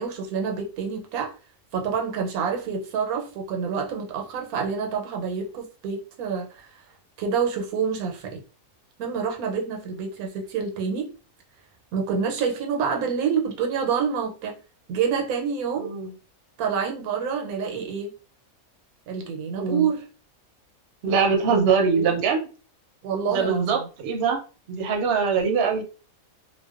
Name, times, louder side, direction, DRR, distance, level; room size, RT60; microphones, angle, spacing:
voice 1, 0.0-1.3 1.7-6.7 7.2-8.4 9.0-11.1 11.9-14.6 14.9-15.9 16.6-18.1 19.1-20.1 21.5-22.2 23.0-23.9, right 6 dB, 90° right, 1.1 m, -27 dB
voice 2, 19.6-19.9 21.0-22.4 23.3-24.4 24.7-25.8, right 5 dB, 60° right, 0.7 m, -23 dB
2.5 x 2.1 x 2.3 m
omnidirectional pair, 1.5 m